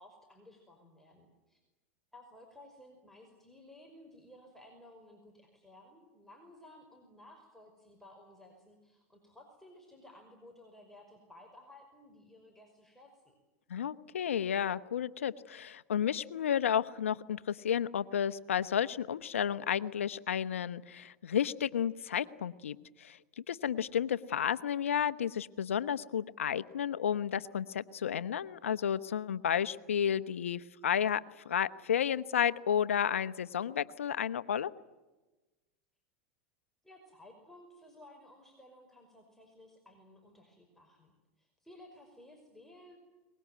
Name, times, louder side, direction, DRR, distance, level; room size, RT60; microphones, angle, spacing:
voice 1, 0.0-1.6 2.1-13.3 36.8-43.0, left 1 dB, 5° left, 1 dB, 5.3 m, -56 dB
voice 2, 13.7-23.2 23.5-34.7, left 9 dB, 90° left, 14 dB, 1.0 m, -32 dB
23.5 x 21.5 x 9.3 m, 1.1 s
hypercardioid pair, 105°, 7 cm